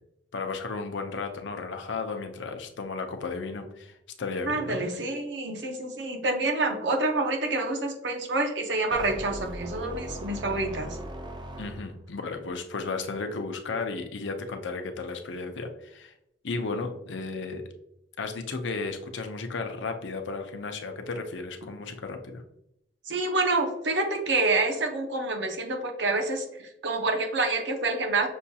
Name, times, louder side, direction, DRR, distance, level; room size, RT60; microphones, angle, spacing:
voice 1, 0.3-4.8 11.6-16.1 16.4-17.6 18.2-22.4, left 4 dB, 70° left, 5 dB, 0.6 m, -34 dB
voice 2, 4.4-10.9 23.1-26.5 26.8-28.3, right 2 dB, 65° right, 3 dB, 0.8 m, -27 dB
sound 1, 8.9-12.2, right 1 dB, 25° right, 0.4 m, -39 dB
6.2 x 2.3 x 2.7 m, 0.82 s
head